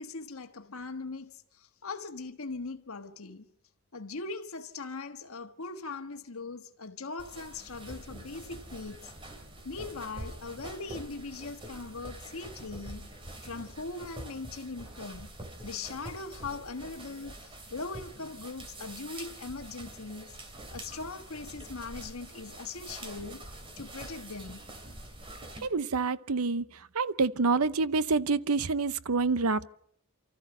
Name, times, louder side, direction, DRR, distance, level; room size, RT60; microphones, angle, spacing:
voice 1, 0.0-3.5 3.9-9.1 9.6-13.1 13.4-15.3 15.6-20.4 20.7-23.4 23.8-24.6, left 3 dB, 70° left, 1.4 m, -40 dB
sound 1, 7.2-25.7, right 1 dB, 25° right, 2.6 m, -45 dB
voice 2, 25.6-26.6 26.9-29.7, right 4 dB, 85° right, 0.8 m, -27 dB
28.5 x 13.5 x 7.9 m
head